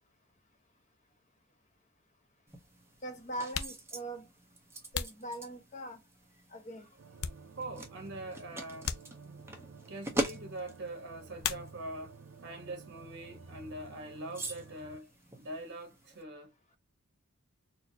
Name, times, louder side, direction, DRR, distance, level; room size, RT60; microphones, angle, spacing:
sound 1, 1.6-1.7 2.7-2.8 3.4-6.0 6.5-7.9 8.2-8.3 8.8-9.6 11.4-12.2 12.4-13.1 13.4-15.6, left 9 dB, 80° left, 0.4 m, -42 dB
sound 2, 2.5-16.2, right 1 dB, 10° right, 0.8 m, -44 dB
voice 1, 3.0-4.2 4.9-6.0 6.5-6.9, right 1 dB, 35° left, 1.0 m, -41 dB
sound 3, 7.0-15.0, right 4 dB, 85° right, 0.6 m, -52 dB
voice 2, 7.5-8.9 9.9-12.2 12.4-16.5, right 1 dB, 55° right, 1.2 m, -43 dB
4.3 x 2.1 x 2.8 m
head